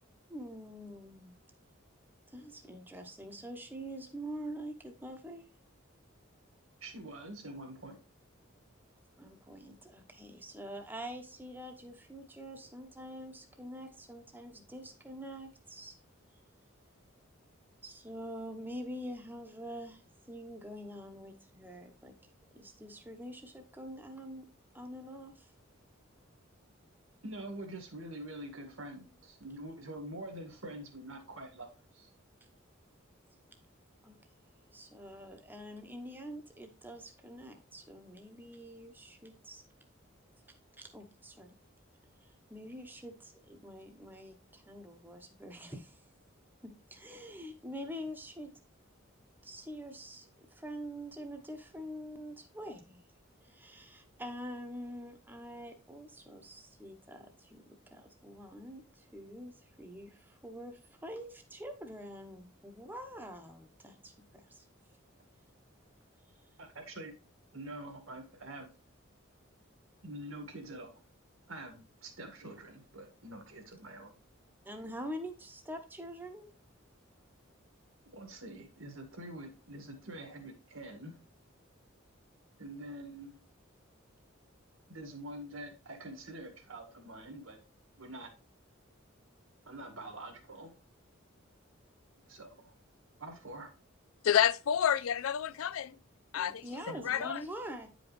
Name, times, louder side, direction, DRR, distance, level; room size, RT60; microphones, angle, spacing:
voice 1, 0.3-1.3 2.3-5.5 9.2-16.0 17.8-20.0 20.3-22.1 22.5-24.5 24.7-25.5 34.0-34.2 34.7-39.6 40.8-41.5 42.2-46.0 46.6-48.5 49.4-53.0 53.4-64.6 74.6-76.5 96.3-97.9, equal, 10° right, 0.9 m, -45 dB
voice 2, 6.8-8.0 27.2-31.7 31.9-32.1 66.6-67.1 67.5-68.7 70.0-71.0 71.5-74.1 78.1-81.2 82.6-83.4 84.9-87.6 88.0-88.3 89.7-90.7 92.3-92.7 93.2-93.7 96.9-97.0, right 1 dB, 85° right, 1.9 m, -45 dB
voice 3, 94.2-95.9 96.3-96.6 97.0-97.4, left 9 dB, 90° left, 0.4 m, -29 dB
9.3 x 5.1 x 3.1 m
head